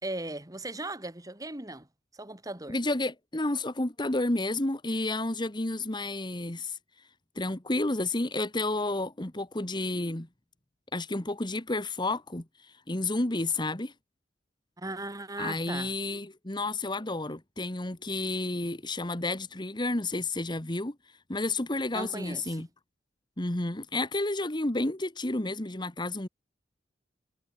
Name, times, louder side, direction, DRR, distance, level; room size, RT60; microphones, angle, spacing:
voice 1, 0.0-1.9 2.1-2.8 14.8-15.9 21.9-22.7, right 2 dB, 20° right, 3.5 m, -37 dB
voice 2, 2.7-6.8 7.3-10.3 10.9-13.9 15.4-20.9 21.3-22.7 23.4-26.3, left 2 dB, 25° left, 1.5 m, -31 dB
head